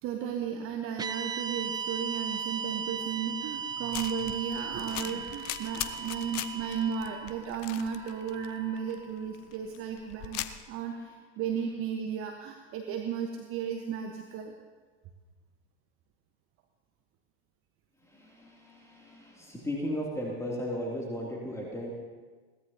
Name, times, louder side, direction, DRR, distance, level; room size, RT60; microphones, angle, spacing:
voice 1, 0.0-11.1 11.4-14.5, right 7 dB, 40° right, 4 dB, 1.2 m, -34 dB
sound 1, 1.0-9.3, right 6 dB, 10° right, 0.5 m, -38 dB
sound 2, 3.9-10.6, left 13 dB, 40° left, 0.8 m, -40 dB
voice 2, 18.0-21.9, equal, 10° left, -3 dB, 2.8 m, -36 dB
21.5 x 17.0 x 2.8 m, 1.4 s
figure-of-eight pair, 80°, 34 cm